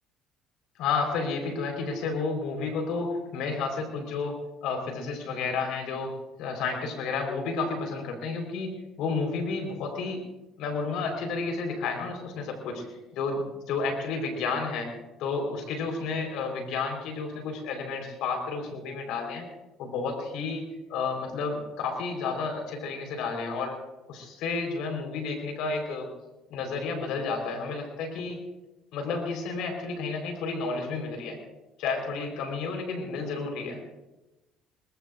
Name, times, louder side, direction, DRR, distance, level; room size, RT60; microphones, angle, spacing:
voice 1, 0.8-6.1 6.4-10.2 10.6-14.9 15.2-19.5 19.8-23.8 24.1-26.1 26.5-28.4 28.9-31.4 31.8-33.8, left 4 dB, 70° left, 3 dB, 4.3 m, -31 dB
24.0 x 20.0 x 2.6 m, 1.0 s
hypercardioid pair, 70°, 0 cm